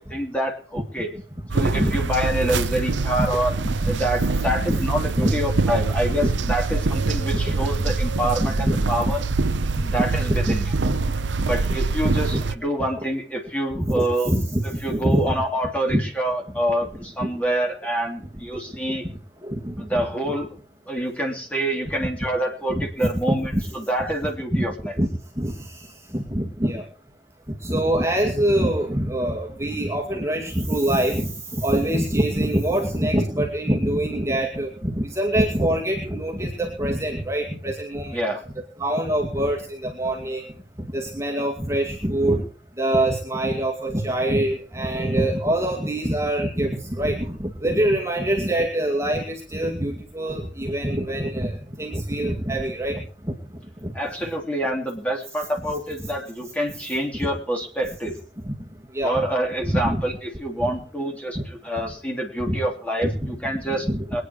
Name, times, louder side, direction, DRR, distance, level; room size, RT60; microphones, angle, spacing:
voice 1, 0.1-1.1 1.5-3.6 3.8-9.2 9.8-10.7 11.4-14.3 14.8-19.0 19.8-20.5 20.9-24.9 38.1-38.4 53.9-58.1 59.0-63.8 64.1-64.2, right 1 dB, 10° left, 0 dB, 3.1 m, -26 dB
sound 1, 1.5-12.5, right 3 dB, 90° right, 0.7 m, -24 dB
voice 2, 8.4-8.8 9.8-9.9 10.3-10.6 10.8-10.9 12.0-12.4 13.7-15.3 15.9-16.0 17.2-17.3 19.4-20.3 21.8-21.9 22.7-22.9 23.3-23.6 24.5-24.6 25.0-25.1 25.4-25.5 26.1-26.8 27.6-38.2 38.8-40.4 40.9-42.4 42.8-53.3 53.8-53.9 57.2-57.3 58.5-58.6 58.9-59.2 59.8-60.0 60.6-60.7 62.5-62.6 63.0-63.1 63.7-64.1, right 1 dB, 15° right, -1 dB, 2.3 m, -24 dB
22.5 x 9.5 x 4.8 m, 0.43 s
head